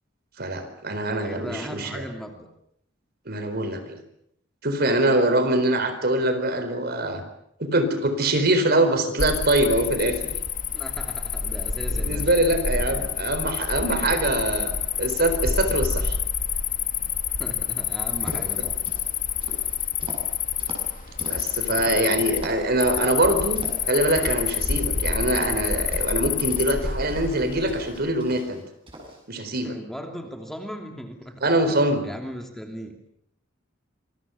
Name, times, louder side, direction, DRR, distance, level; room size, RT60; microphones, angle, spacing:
voice 1, 0.4-2.0 3.3-4.0 4.6-7.2 7.6-10.3 11.9-16.2 18.2-18.3 21.2-28.6 29.3-29.7 31.4-32.1, right 1 dB, 55° right, 9 dB, 4.2 m, -24 dB
voice 2, 1.1-2.5 10.7-12.3 12.9-13.1 17.4-18.8 29.6-33.1, equal, ahead, 3 dB, 2.9 m, -38 dB
Cricket, 9.2-28.1, left 7 dB, 45° left, 1.8 m, -28 dB
sound 1, 18.1-19.0 19.4-22.0 22.4-22.7 22.9-23.9 24.1-24.9 25.3-27.3 27.7-28.6 28.9-29.2, equal, 25° right, 8.0 m, -39 dB
26.5 x 22.5 x 7.1 m, 0.73 s
head